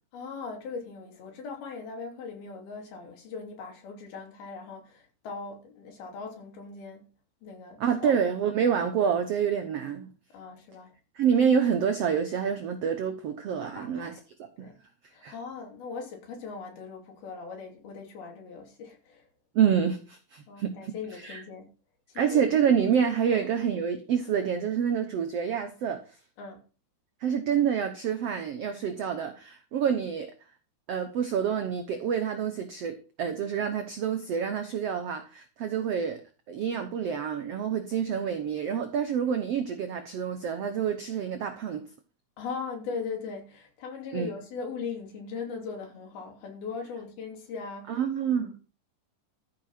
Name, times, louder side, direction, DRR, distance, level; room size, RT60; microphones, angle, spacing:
voice 1, 0.1-7.1 7.4-8.2 10.3-10.9 11.2-11.3 13.7-14.2 14.6-14.8 15.1-19.3 20.5-21.7 22.1-22.4 23.3-23.5 26.4-26.6 42.4-48.0 48.3-48.6, left 5 dB, 75° left, 4.8 m, -39 dB
voice 2, 7.8-10.1 11.1-14.2 14.6-14.7 15.2-15.3 19.5-20.9 21.2-21.4 22.1-26.0 27.2-30.3 30.9-36.2 36.5-41.9 44.1-44.3 47.9-48.5, right 7 dB, 90° right, 1.3 m, -27 dB
14.0 x 6.0 x 5.9 m
omnidirectional pair, 4.4 m